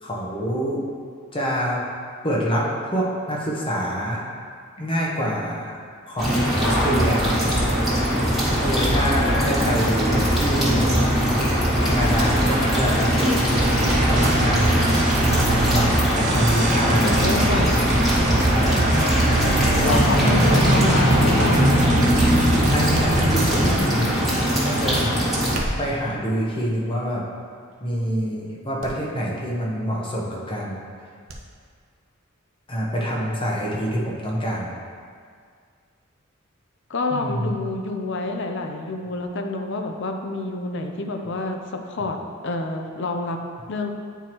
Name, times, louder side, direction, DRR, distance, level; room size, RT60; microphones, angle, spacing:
voice 1, 0.0-0.8 1.3-1.8 2.2-4.3 4.8-5.8 6.1-7.5 8.6-10.9 11.8-13.1 14.1-14.8 15.2-17.5 18.4-18.8 19.8-20.5 22.7-24.1 24.6-25.1 25.8-27.2 27.8-30.8 32.7-34.7 37.1-37.5, equal, 25° left, -4 dB, 0.9 m, -26 dB
sound 1, 6.2-25.6, equal, ahead, 1.6 m, -20 dB
sound 2, 13.5-23.8, right 2 dB, 35° right, 0.4 m, -25 dB
voice 2, 17.0-18.0 19.8-21.7 36.9-42.2 42.4-43.4 43.7-43.9, left 2 dB, 60° left, 4 dB, 0.6 m, -28 dB
sound 3, 22.9-23.7 25.4-26.1 26.9-27.2 27.7-27.8 28.8-29.0 29.3-29.4 31.3-31.4 31.8-31.9, right 1 dB, 85° right, 0.7 m, -34 dB
9.0 x 4.6 x 3.0 m, 2.1 s
head